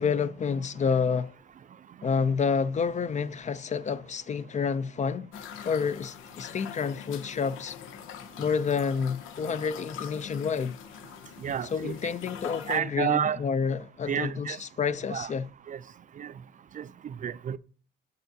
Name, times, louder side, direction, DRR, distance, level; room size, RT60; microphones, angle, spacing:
voice 1, 0.0-1.3 2.0-5.3 5.6-7.8 8.4-10.8 11.7-15.5, left 6 dB, 35° left, 0.4 m, -29 dB
sound 1, 5.3-12.8, left 8 dB, 90° left, 0.6 m, -43 dB
voice 2, 11.4-11.9 12.7-13.4 14.1-14.6 15.1-15.3 15.7-15.8 16.2-16.3 16.7-17.6, right 9 dB, 40° right, 0.4 m, -30 dB
6.7 x 6.6 x 2.7 m
cardioid pair, 90°, 20 cm